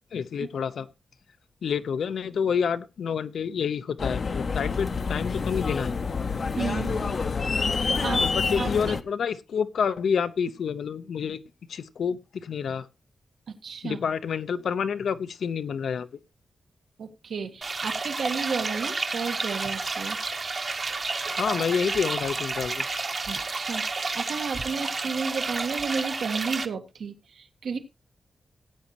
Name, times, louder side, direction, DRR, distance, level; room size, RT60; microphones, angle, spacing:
voice 1, 0.1-0.9 1.6-5.9 8.2-11.4 11.7-12.9 13.8-16.1 21.3-22.9, left 6 dB, 85° left, 0.8 m, -28 dB
sound 1, 4.0-9.0, left 4 dB, 40° left, 0.6 m, -27 dB
voice 2, 6.6-7.1 7.6-8.3 8.5-9.0 13.5-14.0 17.0-20.2 23.3-27.8, right 5 dB, 85° right, 1.7 m, -33 dB
sound 2, 17.6-26.7, right 3 dB, 35° right, 1.0 m, -30 dB
17.0 x 8.5 x 3.0 m
wide cardioid pair, 165°, 0 cm